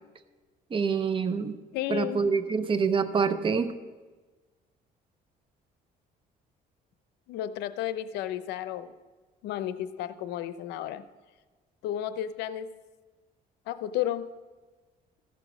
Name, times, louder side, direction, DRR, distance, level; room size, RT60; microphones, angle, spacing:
voice 1, 0.7-1.6 1.9-3.7, right 5 dB, 30° right, 11 dB, 0.7 m, -26 dB
voice 2, 1.7-2.3 7.3-8.9 9.4-11.0 11.8-12.7 13.7-14.3, left 12 dB, 85° left, 12 dB, 0.6 m, -32 dB
14.0 x 6.1 x 6.0 m, 1.3 s
cardioid pair, 110°, 17 cm